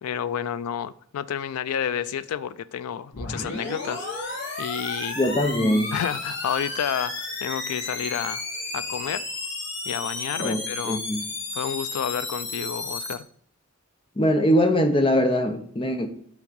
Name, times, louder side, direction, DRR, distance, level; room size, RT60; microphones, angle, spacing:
voice 1, 0.0-5.2 5.9-8.4 8.7-9.2 9.8-11.0 11.5-13.3, left 8 dB, 85° left, 0.4 m, -30 dB
sound 1, 3.1-13.1, left 3 dB, 50° left, 1.4 m, -33 dB
voice 2, 5.2-5.9 10.4-11.3 14.2-16.1, equal, 25° left, 0.6 m, -22 dB
5.9 x 3.9 x 5.2 m
head